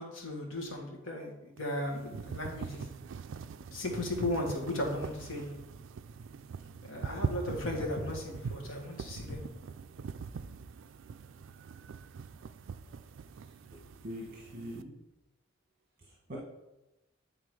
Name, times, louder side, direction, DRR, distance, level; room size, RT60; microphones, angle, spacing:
voice 1, 0.0-2.9 3.7-5.6 6.8-9.4, left 1 dB, 80° left, 1 dB, 1.5 m, -36 dB
sound 1, 1.6-14.8, right 5 dB, 70° right, 0.3 m, -43 dB
voice 2, 13.7-14.9 16.0-16.4, equal, 45° right, -3 dB, 1.2 m, -44 dB
8.9 x 3.7 x 4.7 m, 0.97 s
head